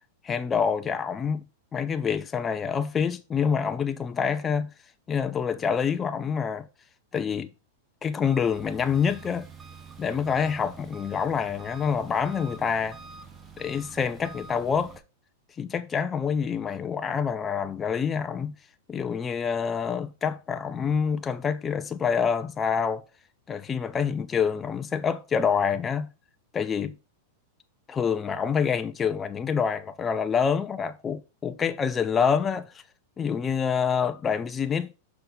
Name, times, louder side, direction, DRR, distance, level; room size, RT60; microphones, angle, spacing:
voice 1, 0.2-1.4 1.7-4.7 5.1-6.6 7.1-7.5 8.0-9.5 10.0-13.0 13.6-14.9 15.6-18.5 18.9-23.0 23.5-26.1 26.5-26.9 27.9-32.8 33.2-34.9, left 6 dB, 15° left, 0.4 m, -27 dB
Engine, 8.2-15.0, right 4 dB, 15° right, 0.8 m, -46 dB
5.6 x 4.1 x 5.2 m
supercardioid pair, 160°, 0 cm